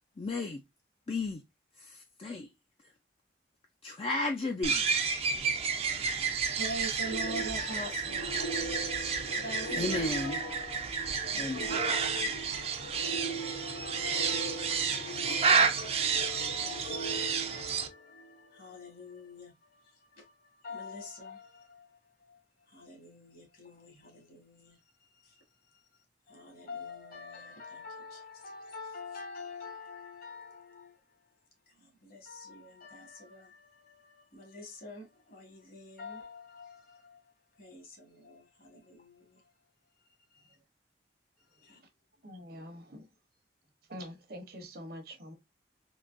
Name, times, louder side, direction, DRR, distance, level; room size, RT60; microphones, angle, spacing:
voice 1, 0.2-0.6 1.1-1.4 1.8-2.5 3.8-4.9 9.8-10.4 11.4-11.8, left 3 dB, 35° left, 0.4 m, -34 dB
sound 1, 4.6-17.9, right 5 dB, 35° right, 0.5 m, -31 dB
voice 2, 6.2-10.7 11.3-12.7 13.0-31.0 31.7-39.5 40.3-40.5 41.6-41.8, left 1 dB, 55° left, 1.4 m, -46 dB
sound 2, 7.0-18.4, right 1 dB, 80° left, 0.6 m, -41 dB
voice 3, 41.5-41.9 42.2-43.1 43.9-45.3, equal, 60° right, 0.9 m, -45 dB
3.7 x 2.9 x 2.5 m
head